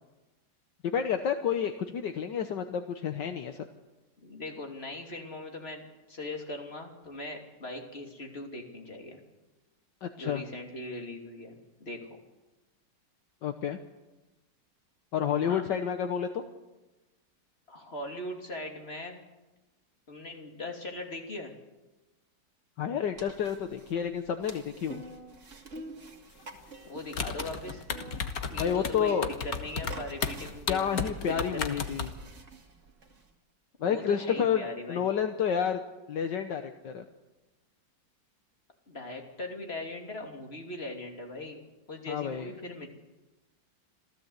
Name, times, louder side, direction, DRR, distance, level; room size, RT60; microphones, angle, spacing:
voice 1, 0.8-3.6 10.0-10.4 13.4-13.8 15.1-16.4 22.8-25.0 28.6-29.3 30.7-32.1 33.8-34.6 34.9-35.8 36.1-37.0 42.1-42.5, left 8 dB, 70° left, 7 dB, 1.7 m, -30 dB
voice 2, 4.2-5.8 6.1-9.2 10.2-12.2 15.4-15.6 17.7-19.2 20.1-21.5 26.8-27.8 28.5-29.2 29.4-31.8 33.8-35.0 38.9-41.6 41.9-42.9, left 2 dB, 30° left, 2 dB, 3.2 m, -40 dB
sound 1, 23.2-33.3, right 3 dB, 40° right, 2.4 m, -48 dB
sound 2, 27.1-32.1, left 6 dB, 55° left, 1.7 m, -33 dB
27.0 x 16.0 x 8.1 m, 1.1 s
omnidirectional pair, 2.0 m